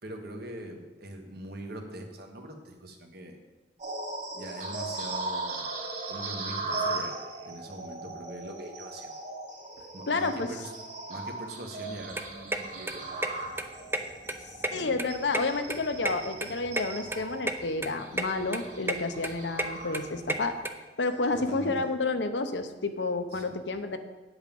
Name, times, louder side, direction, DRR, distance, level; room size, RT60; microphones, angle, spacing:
voice 1, 0.0-3.4 4.3-5.8 6.1-9.1 9.9-10.8 11.1-13.4 14.7-15.0 21.3-21.8 23.3-23.4, right 1 dB, 60° right, 3 dB, 1.4 m, -42 dB
sound 1, 3.8-20.5 20.9-21.1 21.7-21.8, right 3 dB, 40° right, 2.5 m, -38 dB
voice 2, 10.1-10.5 14.7-20.6 21.0-24.0, left 3 dB, 70° left, 8 dB, 0.8 m, -30 dB
sound 2, 11.9-20.7, right 1 dB, 15° right, 0.6 m, -33 dB
8.8 x 8.2 x 5.3 m, 1.2 s
head